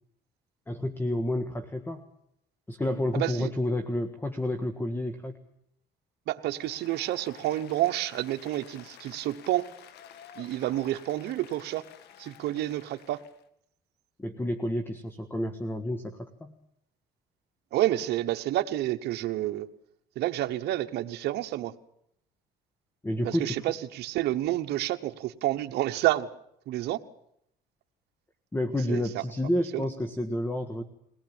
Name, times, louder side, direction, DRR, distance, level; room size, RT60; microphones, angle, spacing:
voice 1, 0.7-2.1 2.7-5.4 14.2-16.6 23.0-23.6 28.5-30.8, left 1 dB, 10° left, 9 dB, 1.6 m, -30 dB
voice 2, 3.1-3.5 6.3-9.7 10.4-11.8 12.2-13.2 17.7-19.7 20.1-21.7 23.2-26.3 26.7-27.0 28.9-29.2 29.7-29.8, right 15 dB, 75° right, 7 dB, 1.1 m, -29 dB
Applause, 6.4-13.4, left 10 dB, 75° left, 1.8 m, -51 dB
22.0 x 18.5 x 8.9 m, 0.74 s
cardioid pair, 110°, 17 cm